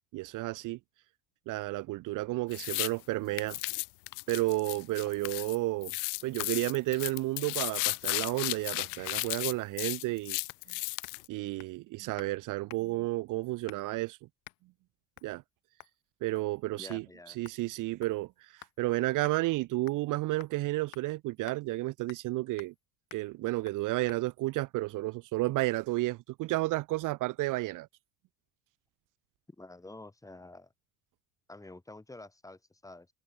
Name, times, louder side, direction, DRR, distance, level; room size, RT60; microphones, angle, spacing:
voice 1, 0.1-0.8 1.5-3.6 4.3-5.9 6.2-10.4 11.3-14.2 15.2-15.4 16.2-22.7 23.1-27.9, right 19 dB, 55° right, 0.9 m, -32 dB
sound 1, 2.5-2.9 3.4-5.6 5.8-11.2, left 40 dB or more, 85° left, 0.6 m, -34 dB
sound 2, 10.5-10.7 11.0-11.3 11.6-11.8 12.2-12.4 12.7-13.0 13.7-14.0 14.4-14.6 15.2-15.3 15.8-16.0 16.4-16.6 16.9-17.0 17.5-18.8 19.2-19.4 19.9-20.1 20.4-20.6 20.9-21.1 21.5-21.6 22.1-22.3 22.6-22.8 23.1-23.3 23.7-23.8 24.1-24.2, left 21 dB, 65° left, 2.0 m, -52 dB
voice 2, 16.7-17.4 29.6-30.7 31.5-33.1, left 2 dB, 10° left, 4.3 m, -49 dB
cardioid pair, 120°, 37 cm